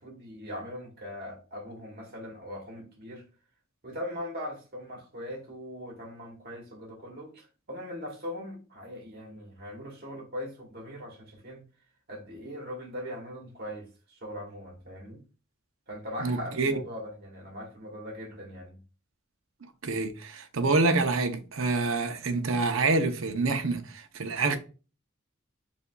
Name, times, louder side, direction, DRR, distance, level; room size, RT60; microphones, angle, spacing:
voice 1, 0.0-3.2 3.8-11.6 12.1-15.2 15.9-18.8, equal, 50° right, 1.4 m, -40 dB
voice 2, 16.2-16.8 19.8-24.6, right 3 dB, 75° right, 0.7 m, -27 dB
6.8 x 2.6 x 2.3 m
head